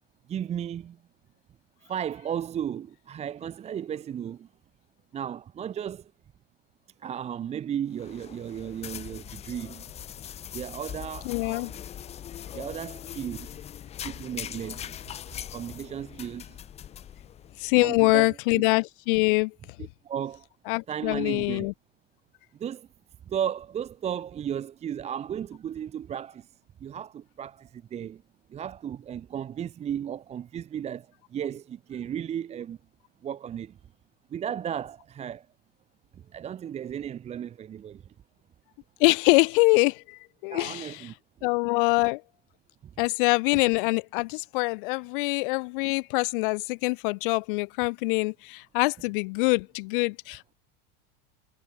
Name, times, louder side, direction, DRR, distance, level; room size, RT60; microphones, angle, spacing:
voice 1, 0.3-1.0 1.8-4.5 5.1-6.1 7.0-9.8 10.5-11.8 12.5-13.6 14.0-14.9 15.5-16.6 17.8-18.4 20.0-20.5 20.9-21.7 22.6-22.9 23.3-26.5 26.8-28.2 28.5-32.8 33.2-33.8 34.3-35.5 36.1-38.1 40.5-41.1 42.8-42.9, right 9 dB, 15° right, 1.2 m, -35 dB
sound 1, 7.9-17.9, left 10 dB, 15° left, 0.9 m, -41 dB
voice 2, 11.3-11.7 17.6-19.5 20.7-21.7 39.0-41.1 41.4-42.2 43.0-50.5, left 27 dB, 45° left, 0.5 m, -24 dB
supercardioid pair, 175°, 37 cm